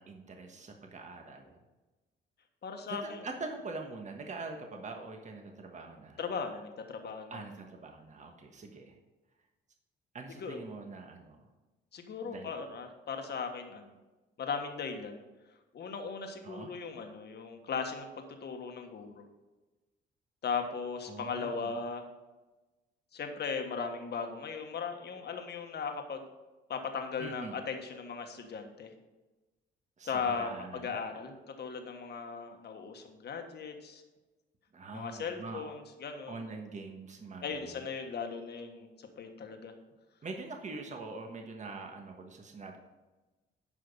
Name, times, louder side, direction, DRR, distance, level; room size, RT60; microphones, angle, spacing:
voice 1, 0.0-1.6 2.9-6.2 7.3-9.0 10.1-11.5 12.2-12.5 16.4-16.7 21.1-21.7 27.2-27.6 30.0-31.0 34.7-35.7 36.3-37.9 40.2-42.8, right 3 dB, 35° right, 3 dB, 1.3 m, -44 dB
voice 2, 2.6-3.2 6.2-7.4 10.4-10.6 11.9-13.9 14.4-15.2 15.7-19.3 20.4-22.0 23.1-26.2 26.7-28.9 30.0-34.0 34.9-36.4 37.4-39.7, left 5 dB, 55° left, 4 dB, 1.5 m, -38 dB
11.0 x 5.0 x 5.5 m, 1.1 s
cardioid pair, 90°, 20 cm